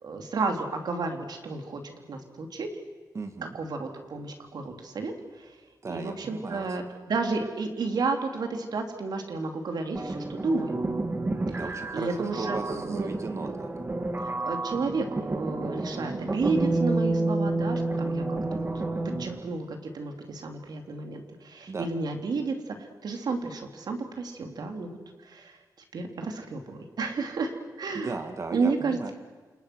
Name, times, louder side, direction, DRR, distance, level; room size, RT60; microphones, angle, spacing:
voice 1, 0.0-2.7 3.5-5.5 5.9-10.8 11.9-13.5 14.2-18.7 19.2-25.0 25.2-25.6 25.9-28.2 28.5-29.1, right 4 dB, 75° right, 4 dB, 3.7 m, -32 dB
voice 2, 3.1-3.6 5.8-6.7 11.5-13.7 21.7-21.9 27.9-29.1, right 3 dB, 45° right, 6 dB, 2.2 m, -36 dB
sound 1, 9.9-19.5, right 2 dB, 30° right, 2.4 m, -30 dB
29.0 x 28.5 x 6.4 m, 1.4 s
wide cardioid pair, 135°, 7 cm